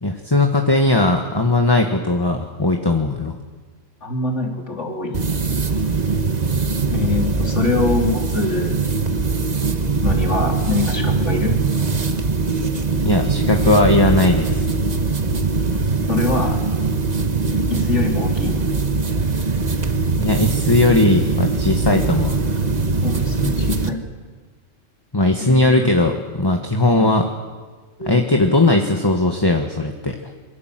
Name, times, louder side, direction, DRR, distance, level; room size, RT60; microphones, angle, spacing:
voice 1, 0.0-3.4 13.0-14.6 20.1-22.4 25.1-27.3 28.0-30.3, left 2 dB, 20° left, 3 dB, 1.6 m, -18 dB
voice 2, 4.0-5.2 6.9-8.8 10.0-11.6 16.1-16.6 17.7-18.6 23.0-24.0 25.4-25.9 27.0-27.1 28.0-28.2, left 3 dB, 65° left, 2 dB, 3.7 m, -24 dB
sound 1, 5.1-23.9, right 4 dB, 35° right, 1.3 m, -21 dB
26.5 x 23.5 x 7.7 m, 1.4 s
omnidirectional pair, 1.3 m